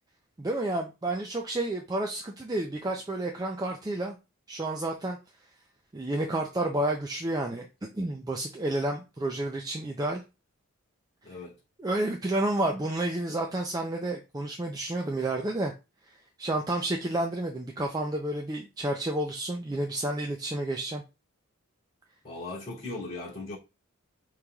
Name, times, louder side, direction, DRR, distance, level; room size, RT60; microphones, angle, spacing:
voice 1, 0.4-4.1 4.5-5.2 5.9-7.7 7.9-10.2 11.8-15.7 16.1-21.0, right 1 dB, 20° right, 0.4 m, -30 dB
voice 2, 11.2-11.6 22.2-23.6, left 2 dB, 25° left, 2.5 m, -38 dB
5.3 x 3.1 x 2.3 m
head